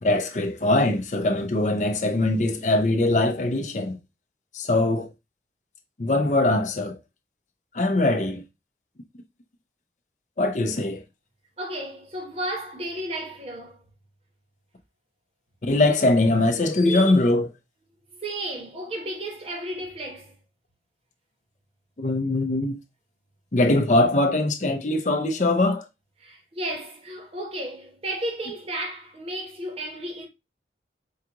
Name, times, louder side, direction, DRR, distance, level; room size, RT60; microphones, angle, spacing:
voice 1, 0.0-4.0 4.5-5.1 6.0-7.0 7.7-8.4 10.4-11.0 15.6-17.5 22.0-22.8 23.5-25.8, left 2 dB, 45° left, 0.6 m, -22 dB
voice 2, 11.6-13.8 18.1-20.3 26.2-30.3, right 1 dB, 35° right, 1.0 m, -33 dB
4.7 x 2.4 x 2.8 m
head